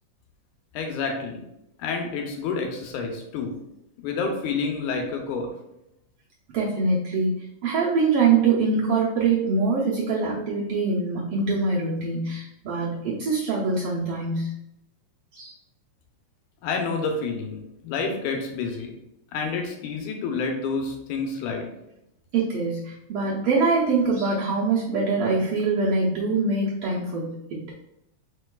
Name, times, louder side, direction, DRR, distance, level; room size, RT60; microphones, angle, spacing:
voice 1, 0.7-1.4 1.8-3.5 4.0-5.5 16.6-18.9 19.3-21.7, left 4 dB, 85° left, 3 dB, 2.1 m, -29 dB
voice 2, 6.5-14.5 15.3-15.5 22.3-27.6, right 4 dB, 75° right, -7 dB, 1.4 m, -24 dB
4.6 x 4.5 x 2.3 m, 0.84 s
omnidirectional pair, 3.5 m